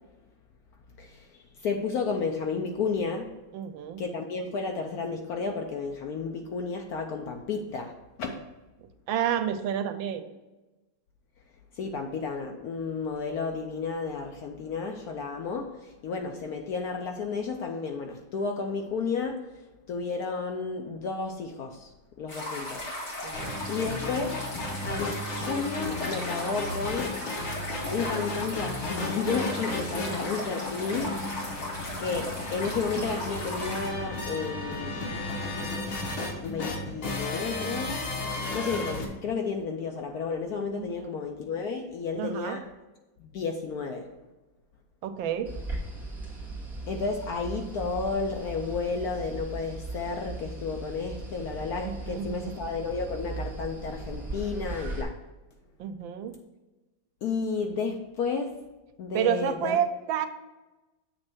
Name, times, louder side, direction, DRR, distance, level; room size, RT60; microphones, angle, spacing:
voice 1, 1.0-3.3 4.0-8.4 11.8-19.4 19.9-21.9 22.2-22.8 23.7-24.4 24.8-27.2 27.9-31.6 32.0-35.1 36.4-38.0 38.5-42.6 43.2-44.1 46.9-55.2 57.2-58.5 59.0-59.8, left 4 dB, 70° left, 3 dB, 0.9 m, -32 dB
voice 2, 3.5-4.0 9.1-10.2 23.2-23.7 40.7-41.2 42.1-42.6 45.0-45.5 51.8-52.6 55.8-56.3 59.1-60.3, right 9 dB, 85° right, 9 dB, 1.3 m, -30 dB
sound 1, 22.3-33.9, left 1 dB, 35° left, 1.9 m, -37 dB
sound 2, 23.3-39.0, left 2 dB, 85° left, 2.0 m, -34 dB
sound 3, 45.4-55.0, right 2 dB, ahead, 1.7 m, -38 dB
7.7 x 3.2 x 6.1 m, 1.1 s
omnidirectional pair, 2.1 m